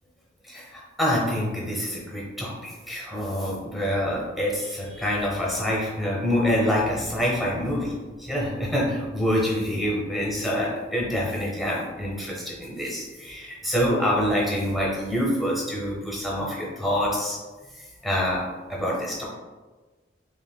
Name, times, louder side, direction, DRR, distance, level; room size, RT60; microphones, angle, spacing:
voice 1, 0.4-17.4 18.0-18.4 18.7-19.2, equal, ahead, -4 dB, 0.9 m, -26 dB
5.9 x 2.5 x 2.2 m, 1.3 s
head